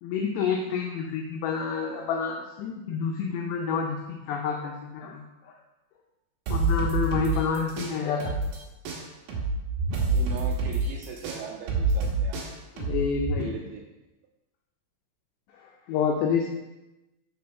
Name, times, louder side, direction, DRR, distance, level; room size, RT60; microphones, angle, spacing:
voice 1, 0.0-5.5 6.5-8.5 12.8-13.6 15.5-16.5, left 6 dB, 90° left, 2 dB, 2.4 m, -29 dB
sound 1, 6.5-8.6 8.8-13.4, right 3 dB, 65° right, 2.5 m, -27 dB
voice 2, 10.0-12.5 13.4-13.8, right 7 dB, 90° right, 1 dB, 2.4 m, -39 dB
6.9 x 5.6 x 5.3 m, 1.0 s
omnidirectional pair, 5.7 m